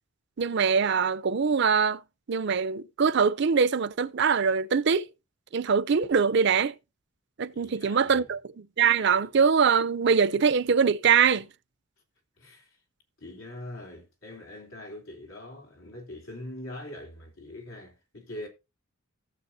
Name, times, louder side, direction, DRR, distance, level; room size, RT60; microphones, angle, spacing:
voice 1, 0.4-2.0 2.3-5.1 5.5-6.7 7.4-11.5, right 6 dB, 55° right, 0.5 m, -23 dB
voice 2, 7.5-8.3 12.4-12.8 13.2-18.5, left 1 dB, 85° left, 3.1 m, -43 dB
17.0 x 7.3 x 2.7 m
head